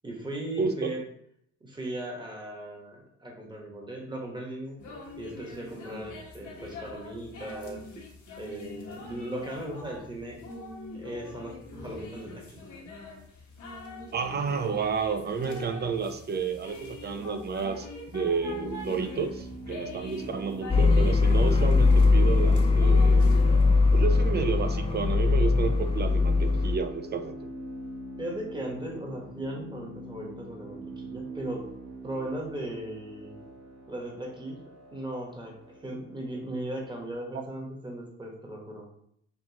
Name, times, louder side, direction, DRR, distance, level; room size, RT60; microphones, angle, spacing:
voice 1, 0.0-1.0 1.6-4.8 5.2-7.8 8.4-10.4 10.9-12.6 28.2-31.6 32.0-33.4 33.9-34.6 34.9-35.5 35.8-38.9, right 1 dB, 15° right, -1 dB, 1.3 m, -37 dB
voice 2, 0.6-0.9 14.1-17.9 18.1-23.3 23.9-27.4, right 5 dB, 35° right, 9 dB, 0.5 m, -31 dB
sound 1, 4.8-23.6, left 2 dB, 75° left, 1.2 m, -43 dB
sound 2, 18.4-37.1, right 2 dB, 55° right, 1.3 m, -43 dB
sound 3, 20.7-26.8, left 3 dB, 20° left, 0.4 m, -21 dB
5.9 x 2.4 x 2.9 m, 0.70 s
cardioid pair, 90°, 30 cm